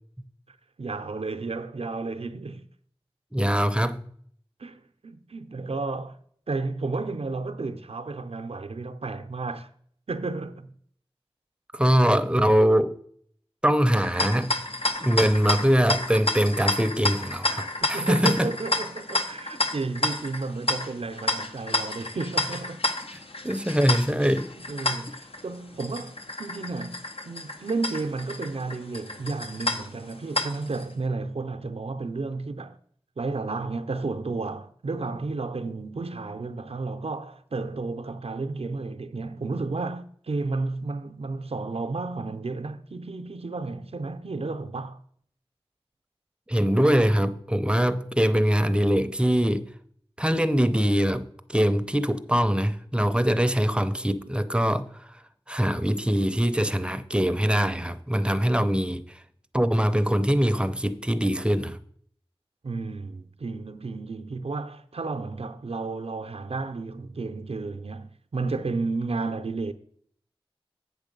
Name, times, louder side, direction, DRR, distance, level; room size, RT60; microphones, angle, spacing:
voice 1, 0.8-2.7 4.6-6.2 6.5-9.7 10.1-10.7 17.8-22.8 24.6-32.8 33.2-45.0 62.6-69.7, right 3 dB, 80° right, 0.5 m, -32 dB
voice 2, 3.3-4.1 11.7-12.9 13.6-14.6 15.0-18.5 23.4-24.5 46.5-49.6 50.2-54.8 55.5-59.2 59.5-61.8, equal, 10° right, 0.6 m, -23 dB
sound 1, 14.0-30.8, left 2 dB, 70° left, 0.8 m, -30 dB
8.1 x 6.4 x 5.2 m
wide cardioid pair, 40°, 10 cm